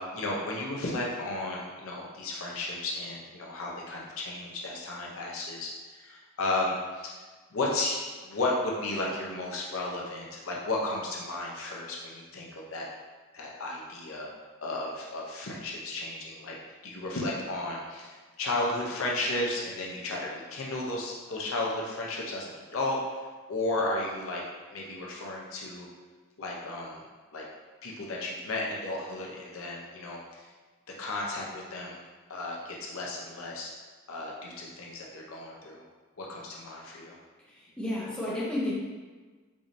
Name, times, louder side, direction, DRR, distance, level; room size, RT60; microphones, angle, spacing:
voice 1, 0.0-7.2 7.5-12.9 13.3-14.3 14.6-16.6 16.8-24.4 24.7-25.9 26.4-27.0 27.3-27.4 27.8-30.5 31.0-32.0 32.3-33.7 34.1-35.8 36.2-37.2, left 2 dB, 75° left, -2 dB, 0.7 m, -34 dB
voice 2, 37.5-38.7, left 1 dB, 5° left, -7 dB, 0.7 m, -32 dB
4.7 x 2.6 x 2.6 m, 1.4 s
head